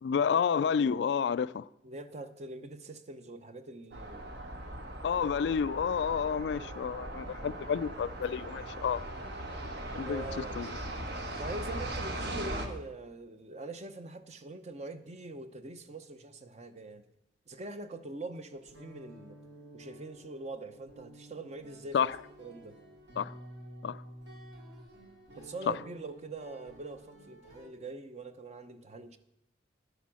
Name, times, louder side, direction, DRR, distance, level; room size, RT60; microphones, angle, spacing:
voice 1, 0.0-1.6 5.0-9.0 10.0-10.2 10.6-10.8 21.9-22.1 23.2-23.3 23.8-24.0, left 7 dB, 70° left, 0.3 m, -30 dB
voice 2, 1.8-4.3 10.0-10.6 11.4-17.0 17.5-19.4 19.7-22.0 22.4-22.8 25.4-29.2, right 2 dB, 40° right, 0.7 m, -43 dB
train passing, 3.9-12.7, right 1 dB, 60° right, 1.4 m, -39 dB
sound 1, 18.5-27.7, right 1 dB, 80° right, 3.9 m, -52 dB
10.5 x 8.1 x 6.2 m
head